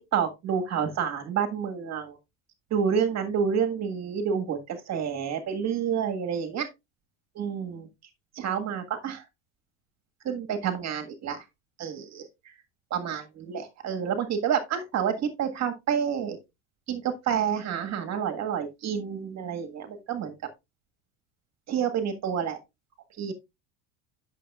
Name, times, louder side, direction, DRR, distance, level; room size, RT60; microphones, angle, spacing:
voice 1, 0.1-2.2 2.7-6.7 7.3-7.9 8.3-9.2 10.2-11.4 11.8-12.5 12.9-16.4 16.9-20.3 21.7-22.6 23.2-23.3, right 7 dB, 40° right, 1.7 m, -29 dB
11.5 x 6.6 x 2.4 m
supercardioid pair, 115°, 40 cm